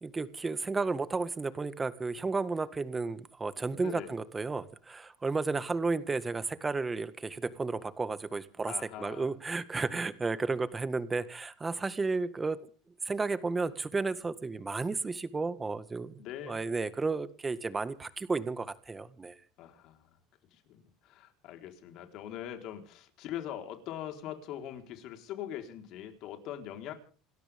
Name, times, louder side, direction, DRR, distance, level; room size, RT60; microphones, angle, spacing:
voice 1, 0.0-12.6 13.1-19.4, right 3 dB, 20° right, 13 dB, 1.8 m, -33 dB
voice 2, 3.8-4.1 8.6-9.3 16.2-16.6 19.6-20.0 20.5-26.9, left 11 dB, 60° left, 5 dB, 4.4 m, -42 dB
28.5 x 13.0 x 3.7 m, 0.40 s
supercardioid pair, 110°, 0 cm